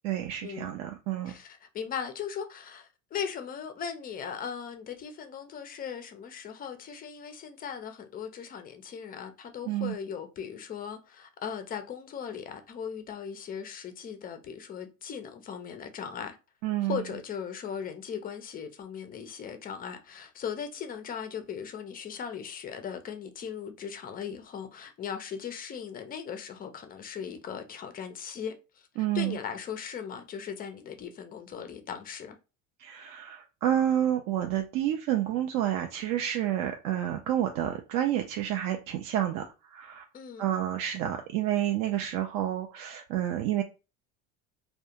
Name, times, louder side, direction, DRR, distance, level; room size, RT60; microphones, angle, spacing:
voice 1, 0.0-1.3 9.7-9.9 16.6-17.0 29.0-29.4 32.8-40.0 40.4-43.6, right 11 dB, 55° right, 0.5 m, -29 dB
voice 2, 1.3-16.4 16.9-28.9 29.1-32.4 40.1-40.5, left 7 dB, 25° left, 0.4 m, -38 dB
2.3 x 2.2 x 2.7 m
supercardioid pair, 105°, 39 cm